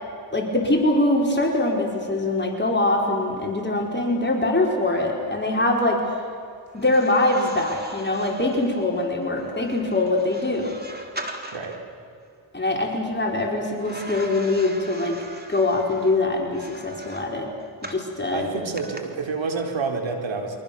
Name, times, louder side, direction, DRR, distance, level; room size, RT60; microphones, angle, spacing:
voice 1, 0.3-6.1 6.7-10.7 12.5-15.2 15.5-17.5 17.8-18.5, left 2 dB, 20° left, 0 dB, 5.0 m, -23 dB
sound 1, 6.7-11.9 13.8-18.1 18.8-19.0, right 1 dB, 20° right, 3.8 m, -40 dB
voice 2, 18.3-20.6, right 4 dB, 65° right, 3 dB, 4.4 m, -28 dB
29.0 x 24.5 x 7.2 m, 2.4 s
supercardioid pair, 45°, 48 cm